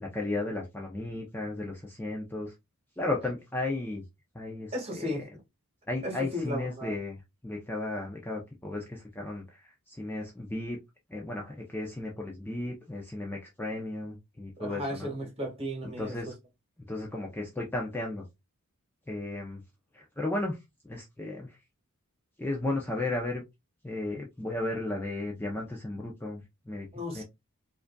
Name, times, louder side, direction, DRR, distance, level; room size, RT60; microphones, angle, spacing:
voice 1, 0.0-2.5 3.0-4.0 4.3-5.2 5.9-10.8 11.1-15.1 15.8-16.3 16.9-18.3 19.1-19.6 19.9-20.6 20.8-21.6 22.4-23.4 23.8-26.9 27.1-27.2, left 2 dB, 10° left, 0.5 m, -34 dB
voice 2, 4.7-5.2 6.0-6.9 14.6-16.1 26.9-27.2, equal, 25° right, 1.5 m, -34 dB
4.9 x 2.5 x 2.2 m
head